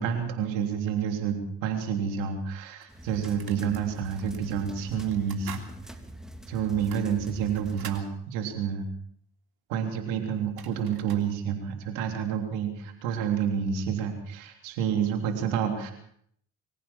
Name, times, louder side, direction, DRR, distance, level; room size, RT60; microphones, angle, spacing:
voice 1, 0.0-5.7 6.5-8.9 9.7-15.9, right 7 dB, 80° right, 5 dB, 3.5 m, -29 dB
sound 1, 2.0-2.1 2.8-3.8 4.2-4.4 5.0-5.7 6.1-6.2 6.7-8.1 10.1-10.2 10.4-11.3, right 7 dB, 55° right, 3.2 m, -46 dB
sound 2, 2.9-8.0, equal, ahead, 3.1 m, -45 dB
24.5 x 15.0 x 7.3 m, 0.68 s
hypercardioid pair, 50°, 44 cm